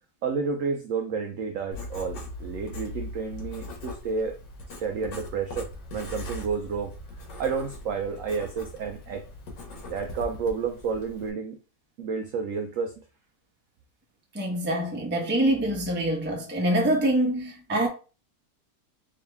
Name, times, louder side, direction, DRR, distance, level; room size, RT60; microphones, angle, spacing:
voice 1, 0.2-4.4 4.8-6.9 7.4-9.2 9.9-11.6 12.0-13.0, right 5 dB, 75° right, 0.7 m, -30 dB
Writing, 1.7-11.3, left 1 dB, 90° left, 1.7 m, -40 dB
voice 2, 14.3-17.9, right 1 dB, 10° right, 0.5 m, -25 dB
3.8 x 2.9 x 3.3 m
omnidirectional pair, 1.8 m